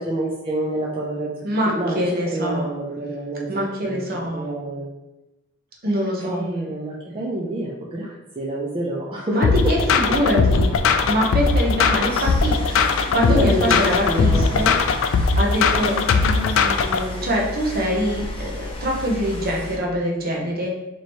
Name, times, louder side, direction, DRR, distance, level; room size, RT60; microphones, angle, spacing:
voice 1, 0.0-1.4 1.7-2.0 2.3-3.5 3.8-4.0 4.3-4.9 5.8-9.7 10.1-10.2 12.6-13.8 14.1-14.7 15.9-17.3, right 1 dB, 25° right, -4 dB, 0.5 m, -28 dB
voice 2, 1.4-2.7 3.5-4.5 5.8-6.5 9.3-10.7 11.1-14.8 15.2-16.0 17.2-20.7, equal, 50° right, -1 dB, 0.8 m, -24 dB
sound 1, 9.4-17.0, left 4 dB, 70° left, 0.3 m, -19 dB
sound 2, 9.4-19.8, left 2 dB, 25° left, 0.6 m, -33 dB
3.0 x 3.0 x 4.3 m, 0.99 s
head